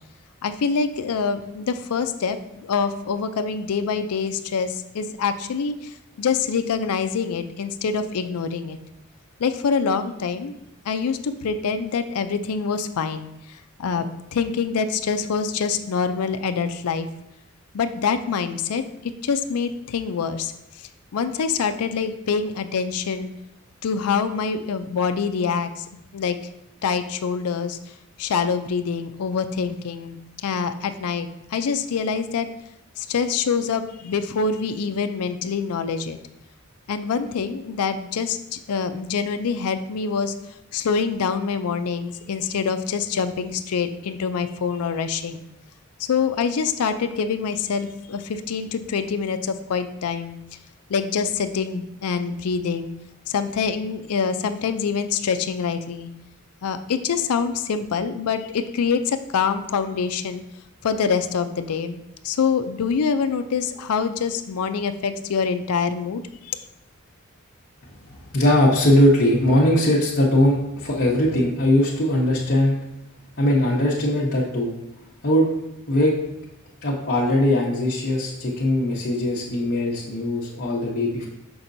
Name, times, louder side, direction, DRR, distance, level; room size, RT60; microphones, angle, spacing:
voice 1, 0.4-5.9 6.2-8.8 9.4-10.6 10.9-13.3 13.8-17.1 17.7-18.8 19.2-20.5 21.1-23.3 23.8-25.8 26.1-26.4 26.8-27.8 28.2-32.5 33.0-36.2 36.9-40.3 40.7-45.4 46.0-50.4 50.9-52.9 53.3-56.1 56.6-60.4 60.8-62.0 62.2-66.6, left 5 dB, 90° left, 9 dB, 0.4 m, -25 dB
voice 2, 68.3-72.8 73.4-74.7 75.2-75.5 75.9-76.1 76.8-81.3, left 1 dB, 50° left, -6 dB, 0.9 m, -20 dB
6.1 x 5.8 x 2.6 m, 0.84 s
head